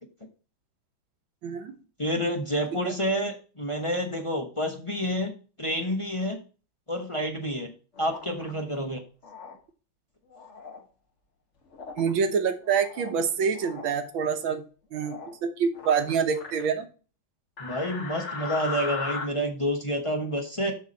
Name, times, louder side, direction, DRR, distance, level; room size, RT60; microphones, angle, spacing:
voice 1, 1.4-1.8 2.8-2.9 12.0-14.7 14.9-16.9, right 6 dB, 85° right, 8 dB, 1.8 m, -26 dB
voice 2, 2.0-5.3 5.6-6.4 6.9-7.7 8.0-9.0 17.6-20.7, equal, 25° left, 3 dB, 0.8 m, -29 dB
sound 1, 7.9-8.5 9.2-9.6 10.3-10.8 11.7-12.1 12.6-13.2 13.5-13.9 14.9-15.4 15.7-16.7 17.6-19.2, left 4 dB, 40° left, 1.5 m, -37 dB
7.0 x 6.1 x 4.1 m, 0.36 s
omnidirectional pair, 2.1 m